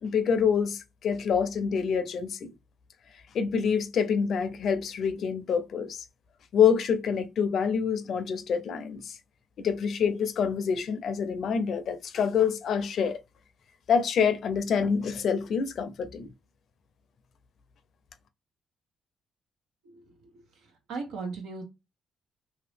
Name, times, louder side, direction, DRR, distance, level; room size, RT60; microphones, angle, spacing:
voice 1, 0.0-2.5 3.3-6.0 6.5-9.2 9.6-13.2 13.9-16.3, left 7 dB, 65° left, 0.6 m, -26 dB
voice 2, 19.8-20.3 20.9-21.6, right 4 dB, 85° right, 1.3 m, -37 dB
2.8 x 2.7 x 3.3 m
cardioid pair, 90°, 0 cm